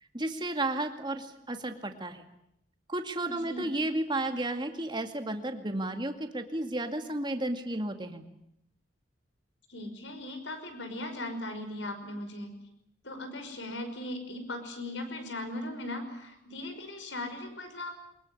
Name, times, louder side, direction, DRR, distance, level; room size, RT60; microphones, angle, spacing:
voice 1, 0.1-2.2 2.9-8.2, right 1 dB, 25° right, 7 dB, 2.3 m, -33 dB
voice 2, 3.3-3.7 9.7-12.5 13.0-17.9, left 1 dB, 70° left, 8 dB, 5.7 m, -38 dB
23.5 x 21.0 x 9.9 m, 0.77 s
head